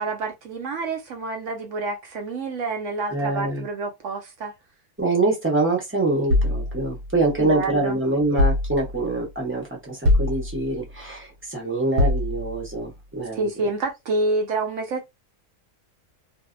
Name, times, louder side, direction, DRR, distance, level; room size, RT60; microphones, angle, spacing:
voice 1, 0.0-4.5 7.4-8.0 13.4-15.1, right 3 dB, 65° right, 0.8 m, -28 dB
voice 2, 3.1-3.7 5.0-13.5, right 2 dB, 15° right, 0.5 m, -25 dB
sound 1, 6.3-7.7 8.4-9.2 10.0-10.9 12.0-12.8, left 1 dB, 85° right, 1.1 m, -24 dB
2.6 x 2.1 x 2.4 m
omnidirectional pair, 1.6 m